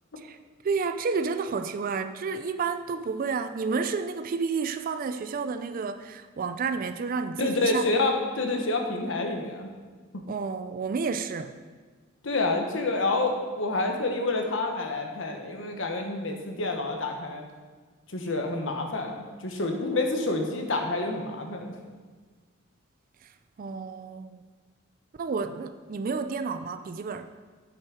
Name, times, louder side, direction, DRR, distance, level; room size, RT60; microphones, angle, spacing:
voice 1, 0.6-7.8 10.3-11.5 23.2-23.3 23.6-24.4 25.2-27.3, right 5 dB, 45° right, 9 dB, 0.4 m, -30 dB
voice 2, 7.4-9.7 12.2-17.4 18.1-21.7, left 2 dB, 70° left, 3 dB, 1.2 m, -28 dB
8.6 x 6.2 x 4.8 m, 1.5 s
head